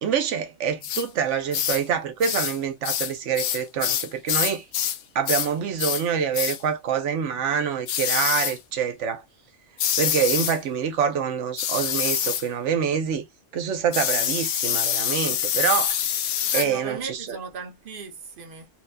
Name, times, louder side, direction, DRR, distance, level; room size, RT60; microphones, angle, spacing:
voice 1, 0.0-4.6 5.1-9.2 10.0-13.2 13.5-16.0 16.5-17.4, right 7 dB, 90° right, 1.0 m, -26 dB
sound 1, 0.8-1.1 1.5-1.8 2.2-2.6 2.8-5.0 5.3-5.5 5.8-6.1 6.3-6.6 7.9-8.6 9.8-10.6 11.6-12.5 13.9-16.7, left 10 dB, 85° left, 0.9 m, -25 dB
voice 2, 16.5-18.7, right 5 dB, 50° right, 1.1 m, -37 dB
4.3 x 2.2 x 2.6 m
omnidirectional pair, 1.2 m